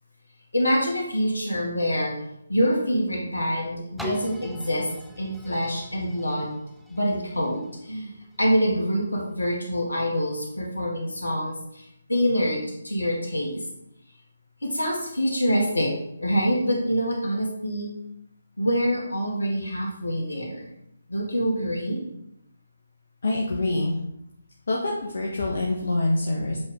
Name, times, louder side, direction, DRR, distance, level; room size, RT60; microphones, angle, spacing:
voice 1, 0.5-2.1 2.5-4.9 5.2-6.6 6.9-13.7 14.6-17.9 18.6-20.7 21.1-22.0, equal, 75° left, -1 dB, 2.1 m, -26 dB
sound 1, 4.0-9.7 10.3-10.4, equal, ahead, 0.5 m, -41 dB
voice 2, 23.2-24.0 24.7-26.6, left 2 dB, 60° left, -2 dB, 1.1 m, -25 dB
7.6 x 4.4 x 3.6 m, 0.79 s
figure-of-eight pair, 145°, 0 cm